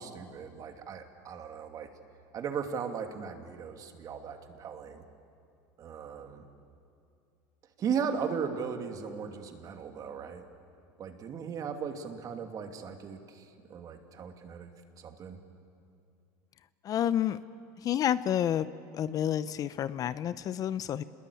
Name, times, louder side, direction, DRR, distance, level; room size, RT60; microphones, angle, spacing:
voice 1, 0.0-1.9 2.3-5.0 5.8-6.4 7.8-10.4 11.0-14.7 15.0-15.4, right 6 dB, 40° right, 5 dB, 2.6 m, -37 dB
voice 2, 16.8-17.4 17.8-18.7 18.9-21.0, left 10 dB, 45° left, 15 dB, 0.7 m, -29 dB
28.0 x 21.0 x 8.6 m, 2.4 s
supercardioid pair, 105°, 9 cm